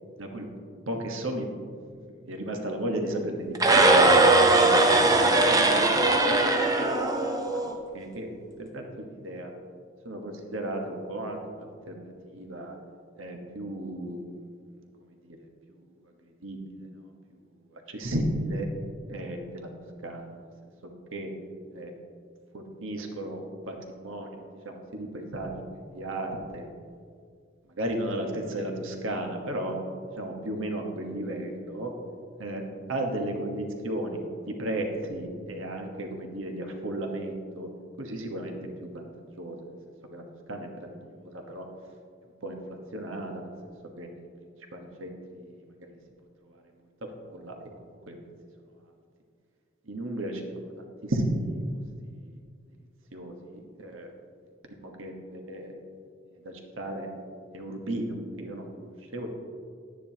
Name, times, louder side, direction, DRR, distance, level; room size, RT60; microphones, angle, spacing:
voice 1, 0.9-1.5 2.1-3.9 4.5-5.0 6.2-6.3 6.8-7.0 7.3-8.3 8.6-9.5 10.0-12.7 13.2-14.3 15.0-15.4 15.7-15.9 16.2-16.6 17.7-18.7 19.1-19.7 20.0-20.3 21.1-21.3 21.7-21.9 22.5-25.5 25.9-26.7 27.7-29.7 30.2-31.9 32.4-32.6 32.9-37.7 38.0-38.5 38.8-39.1 39.4-39.6 40.1-40.2 40.5-41.7 42.4-42.6 42.9-43.7 44.0-44.3 44.7-45.9 46.4-46.6 47.2-47.5 48.1-48.2 49.9-51.6 53.1-54.1 54.6-55.7 56.4-57.1 57.5-59.3, right 1 dB, 80° right, 3 dB, 1.2 m, -34 dB
sound 1, 3.5-7.7, right 2 dB, 20° right, 0.6 m, -20 dB
10.5 x 9.9 x 2.9 m, 2.1 s
head